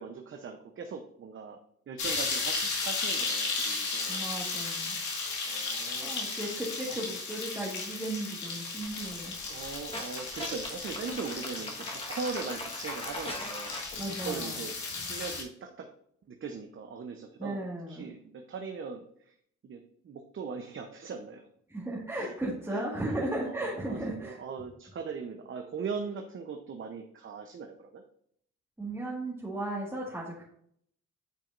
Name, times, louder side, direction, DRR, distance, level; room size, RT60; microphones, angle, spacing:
voice 1, 0.0-1.6 1.9-4.3 5.4-6.2 6.9-7.1 9.5-13.8 14.2-14.7 15.0-15.9 16.3-19.3 19.6-21.4 22.1-22.3 22.7-23.2 23.5-28.0, right 5 dB, 40° right, 5 dB, 0.8 m, -40 dB
sound 1, 2.0-15.4, left 4 dB, 75° left, 2.1 m, -35 dB
voice 2, 4.1-5.0 6.0-9.4 14.0-14.6 17.4-18.1 21.7-24.4 28.8-30.4, right 1 dB, 10° right, -6 dB, 1.7 m, -35 dB
sound 2, 8.8-13.9, left 1 dB, 20° left, 1.4 m, -41 dB
9.1 x 5.0 x 2.6 m, 0.66 s
cardioid pair, 90°, 30 cm